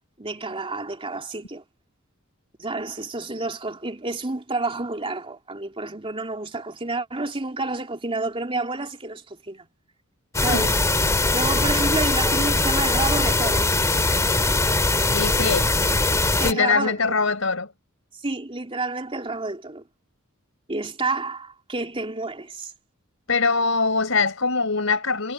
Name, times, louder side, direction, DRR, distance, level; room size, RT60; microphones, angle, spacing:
voice 1, 0.2-1.6 2.6-9.7 10.4-10.8 11.3-13.7 16.4-17.1 18.2-19.8 20.7-22.7, right 3 dB, 25° right, 3.2 m, -29 dB
sound 1, 10.3-16.5, left 2 dB, 15° left, 2.0 m, -21 dB
voice 2, 15.1-15.7 16.4-17.7 23.3-25.3, left 4 dB, 70° left, 4.3 m, -23 dB
head